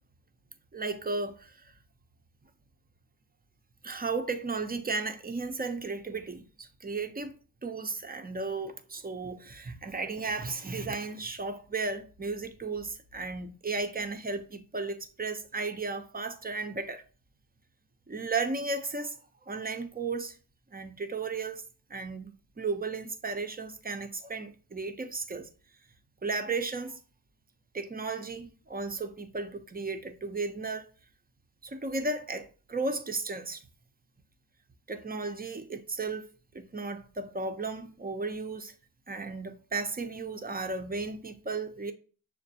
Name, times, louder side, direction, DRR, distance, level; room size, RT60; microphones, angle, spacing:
voice 1, 0.7-1.7 3.8-7.4 7.6-17.0 18.1-20.4 20.7-21.6 21.9-25.5 26.2-27.0 27.7-30.9 31.6-33.6 34.9-36.3 36.5-38.7 39.1-41.9, right 3 dB, 20° right, 0.6 m, -34 dB
6.5 x 2.2 x 2.8 m
supercardioid pair, 50°, 44 cm